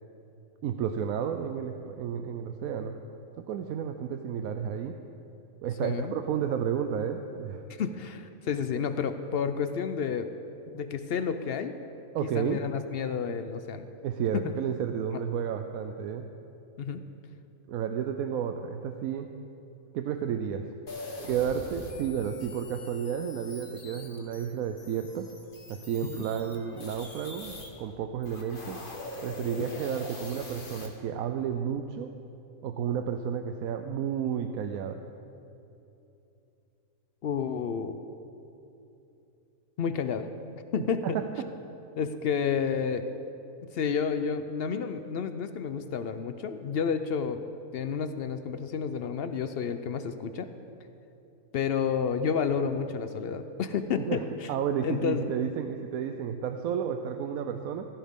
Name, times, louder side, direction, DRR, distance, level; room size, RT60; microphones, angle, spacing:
voice 1, 0.6-3.0 3.4-5.0 5.6-7.6 12.1-12.6 14.0-16.3 17.7-19.3 19.9-20.7 21.3-25.3 25.7-28.8 29.2-32.1 32.6-35.0 41.0-41.2 54.0-57.9, right 8 dB, 80° right, 6 dB, 1.0 m, -32 dB
voice 2, 5.8-6.1 7.7-10.3 10.7-11.7 12.2-13.9 14.3-14.4 15.1-15.2 16.8-17.1 26.1-26.2 29.6-29.8 37.2-38.0 39.8-40.3 40.7-41.2 42.0-43.1 43.7-47.4 47.7-50.5 51.5-54.2 54.8-55.2, left 6 dB, 60° left, 9 dB, 0.6 m, -30 dB
sound 1, 20.9-27.7 28.1-30.9, left 2 dB, 40° left, 1.5 m, -43 dB
16.0 x 14.5 x 3.6 m, 2.9 s
omnidirectional pair, 1.5 m